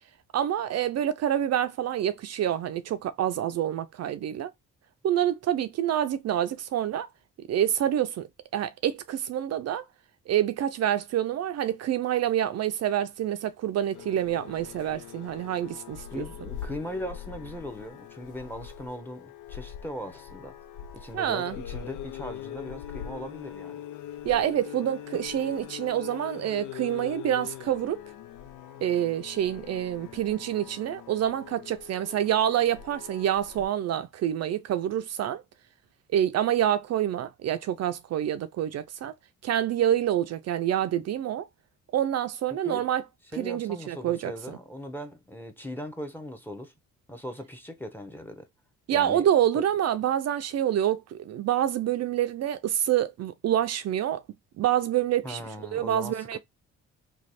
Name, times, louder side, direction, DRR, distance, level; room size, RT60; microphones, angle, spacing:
voice 1, 0.3-4.5 5.0-7.1 7.5-8.3 8.5-9.8 10.3-16.2 21.1-21.6 24.2-28.0 28.8-35.4 36.1-39.1 39.4-41.5 41.9-43.0 43.4-44.3 48.9-54.2 54.6-55.4 55.7-56.4, right 11 dB, 60° right, 0.5 m, -27 dB
sound 1, 13.9-33.7, left 10 dB, 80° left, 0.5 m, -42 dB
voice 2, 16.1-20.6 20.9-23.8 42.5-42.9 43.3-46.7 47.1-48.5 48.9-49.3 49.5-49.6 55.2-56.4, equal, 5° left, 0.9 m, -39 dB
3.2 x 2.3 x 4.1 m
cardioid pair, 90°, 30 cm